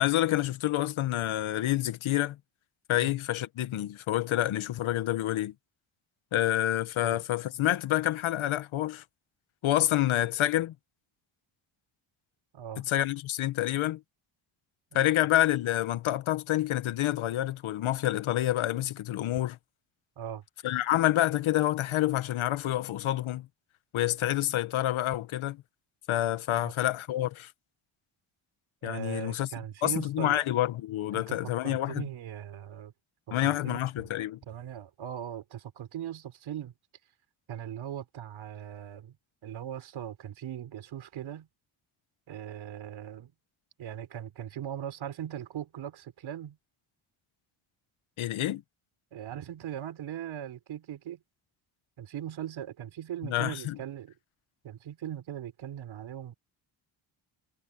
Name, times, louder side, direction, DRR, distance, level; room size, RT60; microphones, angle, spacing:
voice 1, 0.0-2.4 2.9-5.5 6.3-9.0 9.6-10.7 12.8-14.0 14.9-19.6 20.6-23.5 23.9-25.6 26.1-27.5 28.8-29.5 29.8-32.1 33.3-34.4 48.2-48.6 53.2-53.8, left 14 dB, 80° left, 1.4 m, -28 dB
voice 2, 12.5-12.8 14.9-15.0 20.2-20.4 26.5-26.7 28.8-30.4 31.1-31.4 31.6-32.9 33.4-34.1 34.5-36.7 37.5-39.2 39.4-41.5 42.3-43.3 43.8-46.6 49.1-51.2 52.0-54.1 54.6-56.3, right 10 dB, 70° right, 4.3 m, -39 dB
cardioid pair, 155°, 48 cm